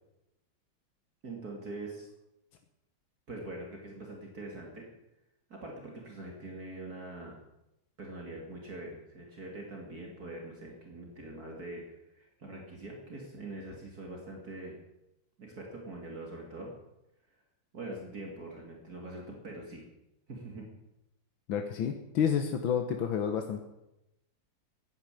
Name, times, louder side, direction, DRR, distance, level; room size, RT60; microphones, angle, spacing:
voice 1, 1.2-2.1 3.3-4.9 5.5-7.4 8.0-14.8 15.4-16.7 17.7-19.8 20.3-20.7, right 2 dB, 50° right, 0 dB, 3.1 m, -43 dB
voice 2, 21.5-23.6, left 7 dB, 85° left, 6 dB, 1.9 m, -30 dB
14.5 x 9.7 x 10.0 m, 0.90 s
omnidirectional pair, 2.1 m